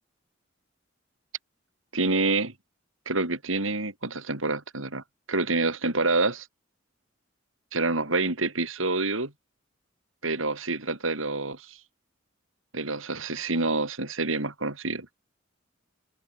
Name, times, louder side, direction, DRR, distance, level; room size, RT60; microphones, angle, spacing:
voice 1, 1.9-2.5 3.0-6.5 7.7-9.3 10.2-11.8 12.7-15.1, right 3 dB, 85° right, 5.0 m, -27 dB
head